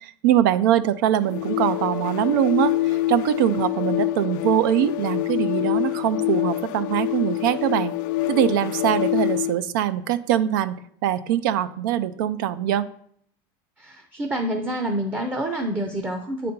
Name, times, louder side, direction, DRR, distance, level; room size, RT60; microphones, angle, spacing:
voice 1, 0.0-7.9 8.3-12.9, right 11 dB, 80° right, 15 dB, 0.5 m, -23 dB
sound 1, 1.2-9.6, left 16 dB, 70° left, 0.4 m, -26 dB
voice 2, 13.8-16.5, right 1 dB, 15° right, 4 dB, 0.6 m, -27 dB
8.6 x 4.2 x 5.2 m, 0.66 s
supercardioid pair, 155°, 11 cm